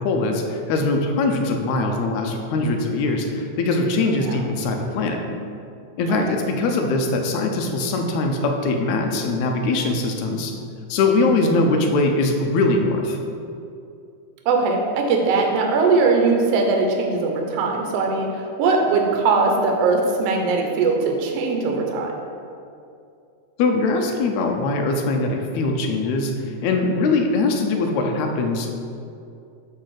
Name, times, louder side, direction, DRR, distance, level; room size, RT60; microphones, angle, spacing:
voice 1, 0.0-5.3 6.0-10.5 10.9-13.2 23.6-26.3 26.6-28.7, left 3 dB, 75° left, 3 dB, 2.0 m, -22 dB
voice 2, 14.4-22.1, right 4 dB, 70° right, 1 dB, 1.7 m, -20 dB
7.9 x 3.4 x 6.4 m, 2.5 s
omnidirectional pair, 3.5 m